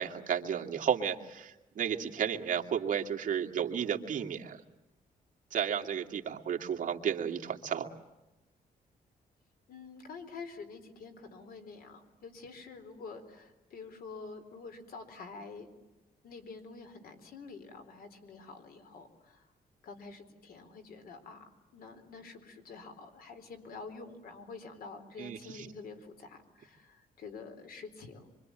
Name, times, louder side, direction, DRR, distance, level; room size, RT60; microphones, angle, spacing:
voice 1, 0.0-4.6 5.5-7.9 25.2-25.7, right 8 dB, 55° right, 2 dB, 2.3 m, -33 dB
voice 2, 9.7-15.7 16.2-19.4 19.8-21.4 21.7-28.3, left 4 dB, 75° left, 7 dB, 4.2 m, -47 dB
26.0 x 25.0 x 8.9 m, 1.0 s
cardioid pair, 135°, 16 cm